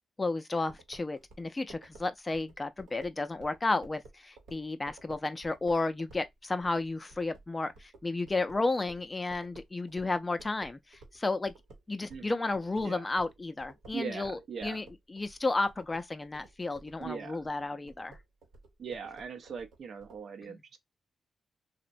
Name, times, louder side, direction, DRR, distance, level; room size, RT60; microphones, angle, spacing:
voice 1, 0.2-11.5 11.9-18.2 20.5-20.6, left 2 dB, 25° left, 0.4 m, -33 dB
sound 1, 0.7-11.2 11.5-20.2, right 2 dB, 85° right, 0.9 m, -54 dB
voice 2, 12.1-12.4 12.8-13.1 13.9-14.8 17.0-17.4 18.8-20.8, right 6 dB, 65° right, 0.6 m, -40 dB
2.9 x 2.1 x 2.5 m
cardioid pair, 75°, 0 cm